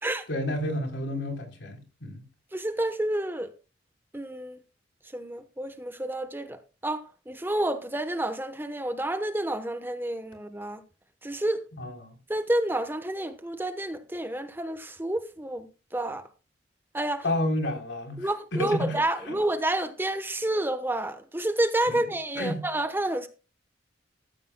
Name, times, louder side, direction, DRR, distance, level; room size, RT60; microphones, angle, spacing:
voice 1, 0.3-2.2 11.8-12.1 17.2-19.0 19.3-19.4 21.9-22.0 22.4-22.6, left 1 dB, 80° left, 3.5 m, -30 dB
voice 2, 2.5-3.5 4.1-4.6 5.1-10.8 11.2-11.6 12.3-16.3 16.9-17.2 18.2-23.3, right 1 dB, 10° right, 1.0 m, -29 dB
14.0 x 14.0 x 2.2 m
head